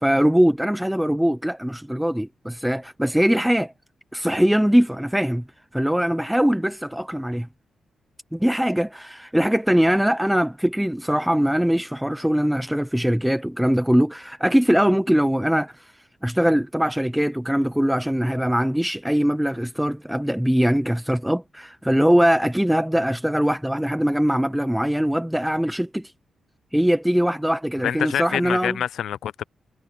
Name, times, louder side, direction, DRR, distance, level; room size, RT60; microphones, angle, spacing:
voice 1, 0.0-3.7 4.1-5.4 5.7-7.5 8.3-15.9 16.2-26.1 26.7-28.8, equal, ahead, 0.4 m, -21 dB
voice 2, 27.8-29.4, left 10 dB, 85° left, 0.4 m, -26 dB
wide cardioid pair, 170°, 0 cm